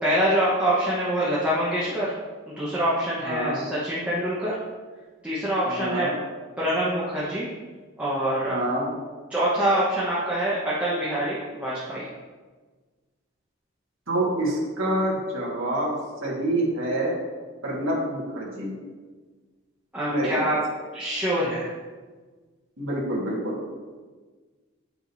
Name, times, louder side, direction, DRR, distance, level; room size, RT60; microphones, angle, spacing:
voice 1, 0.0-2.1 2.5-4.6 5.2-6.1 6.6-7.5 8.0-8.6 9.3-12.0 19.9-20.6 20.9-21.7, right 1 dB, 5° right, -9 dB, 1.1 m, -25 dB
voice 2, 3.2-3.6 5.6-6.1 8.5-8.9 14.1-15.9 16.2-17.2 17.6-18.7 20.1-20.5 22.8-23.6, right 1 dB, 75° right, -4 dB, 1.8 m, -27 dB
8.8 x 5.0 x 2.7 m, 1.4 s
head